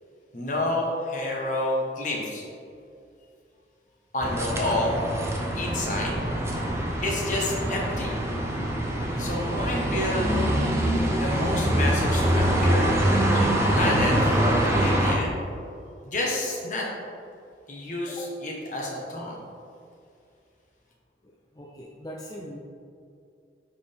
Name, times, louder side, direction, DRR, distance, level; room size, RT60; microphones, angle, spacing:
voice 1, 0.3-2.4 4.1-5.0 5.5-6.2 7.0-8.2 9.2-10.3 11.2-12.9 13.3-15.3 16.0-16.9 17.7-19.3, left 1 dB, 45° left, -2 dB, 1.4 m, -29 dB
sound 1, 4.2-15.2, right 1 dB, 15° right, 0.8 m, -24 dB
voice 2, 6.5-7.0 18.2-18.3 21.2-22.6, equal, 20° left, -2 dB, 0.5 m, -42 dB
9.3 x 4.6 x 3.6 m, 2.5 s
head